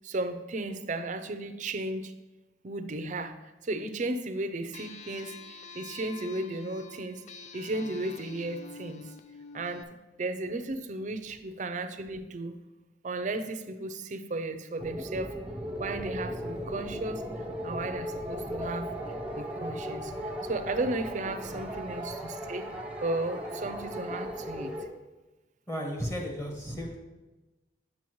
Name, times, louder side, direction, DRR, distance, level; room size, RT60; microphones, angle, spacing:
voice 1, 0.0-2.1 2.6-3.4 3.6-7.2 7.5-9.1 9.5-9.9 10.2-12.5 13.0-15.3 15.8-18.9 19.4-22.7 23.0-24.7, right 2 dB, 45° right, 9 dB, 0.5 m, -34 dB
sound 1, 4.7-9.8, left 4 dB, 40° left, 0.3 m, -47 dB
sound 2, 14.8-24.9, equal, 5° right, 0.8 m, -37 dB
voice 2, 25.7-27.0, equal, 15° left, 0 dB, 1.2 m, -34 dB
8.4 x 6.6 x 3.1 m, 1.1 s
head